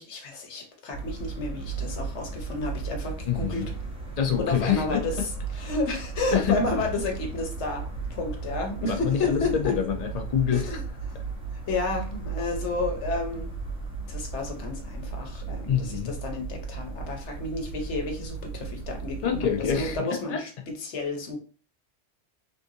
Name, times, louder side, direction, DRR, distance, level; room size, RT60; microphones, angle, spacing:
voice 1, 0.0-3.7 4.4-5.1 5.5-9.7 10.5-11.2 11.7-13.5 14.1-19.5 19.8-21.4, left 3 dB, 75° left, 3 dB, 1.1 m, -31 dB
sound 1, 0.9-20.0, right 4 dB, 5° right, 0.7 m, -35 dB
voice 2, 3.2-3.7 4.2-5.0 6.3-6.6 8.9-10.8 15.7-16.1 19.2-20.4, left 8 dB, 50° left, 5 dB, 0.5 m, -26 dB
3.6 x 2.6 x 2.7 m, 0.38 s
omnidirectional pair, 1.2 m